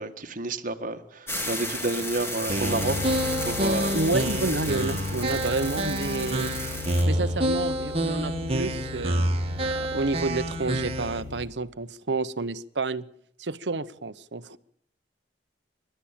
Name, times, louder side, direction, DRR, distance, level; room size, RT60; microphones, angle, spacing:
voice 1, 0.0-3.1 3.4-4.0, right 2 dB, 50° right, 1.8 m, -30 dB
sound 1, 1.3-7.0, left 1 dB, 15° left, 7.2 m, -34 dB
sound 2, 2.5-11.2, right 1 dB, 35° right, 2.2 m, -28 dB
sound 3, 2.6-11.5, left 3 dB, 45° left, 4.5 m, -37 dB
voice 2, 3.9-6.5 7.1-13.1 13.4-14.6, right 3 dB, 75° right, 1.0 m, -30 dB
27.5 x 12.5 x 9.0 m
head